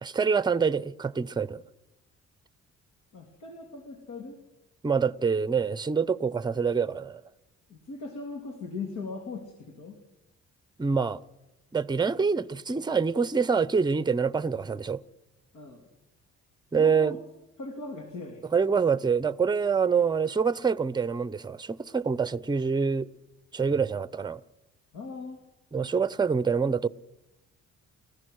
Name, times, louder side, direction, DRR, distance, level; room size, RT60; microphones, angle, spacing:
voice 1, 0.0-1.6 4.8-7.2 10.8-11.2 11.7-15.0 16.7-17.2 18.5-23.1 23.5-24.4 25.7-26.9, right 5 dB, 15° right, 0.6 m, -26 dB
voice 2, 3.1-4.4 7.7-10.0 15.5-15.8 16.8-17.2 17.6-18.4 24.9-25.4, left 3 dB, 75° left, 2.9 m, -39 dB
30.0 x 14.5 x 6.4 m
cardioid pair, 90°, 30 cm